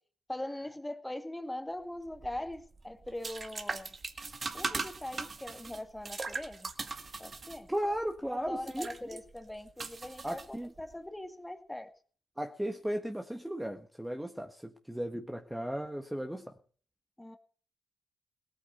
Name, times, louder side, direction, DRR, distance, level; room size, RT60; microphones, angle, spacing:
voice 1, 0.3-4.0 4.5-6.7 7.2-7.7 8.3-11.9 17.2-17.4, left 1 dB, 10° left, 2.1 m, -41 dB
sound 1, 2.1-10.9, right 4 dB, 40° right, 2.0 m, -41 dB
voice 2, 7.7-8.9 10.2-10.7 12.4-16.4, equal, 5° right, 1.6 m, -35 dB
18.5 x 8.8 x 6.6 m
hypercardioid pair, 50°, 0 cm